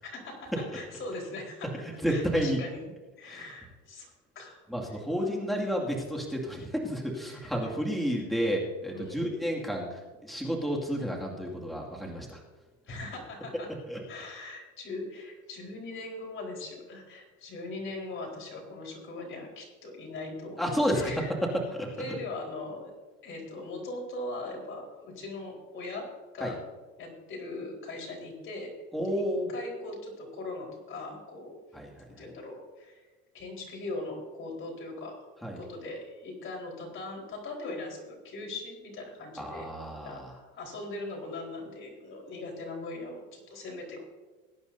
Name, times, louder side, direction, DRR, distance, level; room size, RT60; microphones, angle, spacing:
voice 1, 0.0-1.7 2.1-2.8 3.2-4.1 4.3-4.6 4.9-5.0 7.3-7.5 8.9-9.3 12.9-13.7 14.1-21.3 22.0-22.9 23.2-26.1 26.3-26.6 27.0-28.7 29.1-31.6 32.1-33.0 33.3-35.1 35.6-39.7 40.0-44.0, left 2 dB, 40° left, -1 dB, 4.3 m, -40 dB
voice 2, 2.0-2.6 3.3-3.4 4.7-12.4 13.9-14.0 20.6-21.1 21.7-21.9 26.4-26.5 28.9-29.5 31.7-32.0 35.4-35.6 39.4-40.3, equal, ahead, -2 dB, 2.2 m, -31 dB
21.0 x 10.0 x 2.7 m, 1.3 s
cardioid pair, 130°, 32 cm